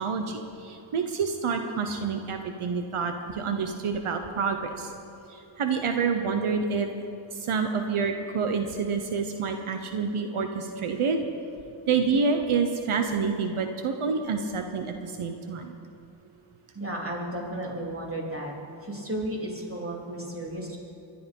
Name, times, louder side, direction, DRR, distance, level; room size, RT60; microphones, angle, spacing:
voice 1, 0.0-4.9 5.3-6.9 7.4-11.2 11.9-15.7, right 5 dB, 85° right, 5 dB, 1.1 m, -28 dB
voice 2, 16.7-18.5 18.8-20.8, right 1 dB, 25° right, -2 dB, 3.5 m, -33 dB
23.0 x 11.0 x 5.4 m, 2.8 s
wide cardioid pair, 75°, 49 cm